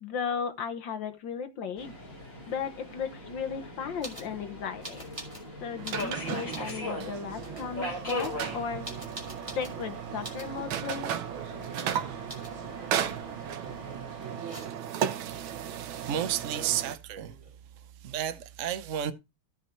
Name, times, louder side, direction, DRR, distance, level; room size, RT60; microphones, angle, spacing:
voice 1, 0.0-1.9 2.5-5.2 5.6-8.8 9.6-11.1, left 7 dB, 70° left, 1.7 m, -35 dB
Subway metro underground, 1.8-14.4, left 1 dB, 40° left, 5.0 m, -41 dB
sound 1, 4.0-4.3 4.8-5.5 5.8-6.8 7.4-7.7 8.0-9.8 10.2-10.5 10.9-11.3 11.7-12.0 12.3-12.5 12.9-13.3 14.2-15.0 16.8-16.9 17.0-17.6, right 1 dB, 15° right, 2.8 m, -45 dB
sound 2, 5.8-17.0, right 9 dB, 80° right, 1.7 m, -35 dB
voice 2, 15.2-15.7 16.1-17.4 17.8-19.1, right 10 dB, 60° right, 0.8 m, -32 dB
14.0 x 5.1 x 4.4 m
omnidirectional pair, 2.2 m